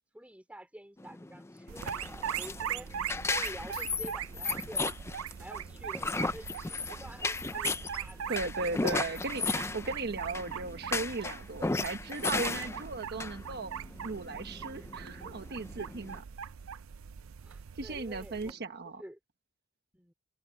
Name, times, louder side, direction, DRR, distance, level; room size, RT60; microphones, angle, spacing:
voice 1, 0.1-3.1 3.3-4.8 5.3-8.2 8.7-8.8 17.4-19.2 19.9-20.1, right 1 dB, 5° right, 2.6 m, -49 dB
sound 1, 1.0-16.2, left 3 dB, 15° left, 0.4 m, -35 dB
sound 2, 1.7-18.5, right 8 dB, 85° right, 0.5 m, -41 dB
voice 2, 8.3-13.8 14.0-16.2 17.7-19.0, right 3 dB, 55° right, 1.1 m, -37 dB
head